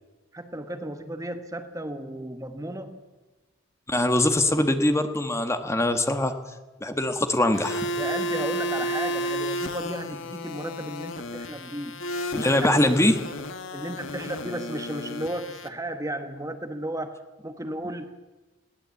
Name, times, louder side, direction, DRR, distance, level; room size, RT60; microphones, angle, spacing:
voice 1, 0.3-3.0 8.0-12.0 12.6-12.7 13.7-17.2 17.4-18.1, right 1 dB, 15° right, 7 dB, 1.2 m, -34 dB
voice 2, 3.9-6.3 6.8-7.9 12.3-13.1, left 1 dB, 15° left, 7 dB, 1.4 m, -22 dB
sound 1, 7.5-15.7, equal, 70° left, 1.6 m, -32 dB
21.0 x 17.0 x 8.4 m, 1.2 s
head